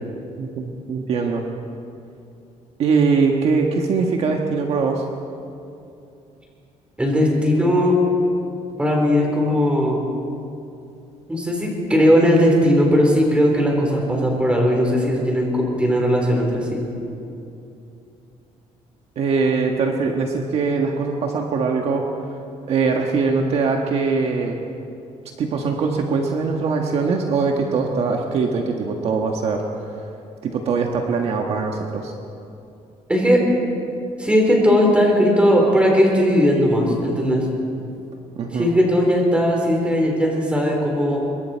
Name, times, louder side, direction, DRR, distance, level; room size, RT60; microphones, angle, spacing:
voice 1, 0.4-1.4 2.8-5.0 19.1-22.1 22.7-24.6 25.4-29.6 30.0-30.1 30.4-32.1 38.3-38.7, right 4 dB, 50° right, 2 dB, 1.5 m, -22 dB
voice 2, 7.0-8.0 8.8-10.0 11.3-16.9 33.1-33.4 34.2-37.5 38.5-41.2, equal, 10° right, -1 dB, 4.1 m, -18 dB
26.0 x 22.5 x 4.5 m, 2.7 s
cardioid pair, 165°, 13 cm